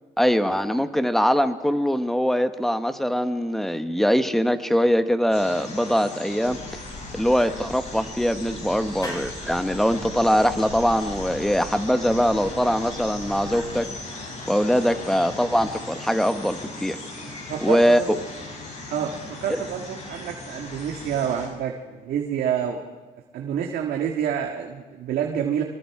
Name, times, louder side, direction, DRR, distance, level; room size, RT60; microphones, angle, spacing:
voice 1, 0.2-6.6 7.1-13.9 14.5-17.0 17.6-18.0 19.5-19.6, equal, ahead, 9 dB, 1.2 m, -22 dB
sound 1, 5.3-21.5, left 2 dB, 40° left, 7.0 m, -38 dB
sound 2, 6.4-13.8, left 1 dB, 25° left, 8.0 m, -41 dB
voice 2, 17.5-18.2 18.9-22.8 23.3-25.6, right 8 dB, 70° right, 2 dB, 1.9 m, -28 dB
25.0 x 23.5 x 4.9 m, 1.3 s
cardioid pair, 110°, 17 cm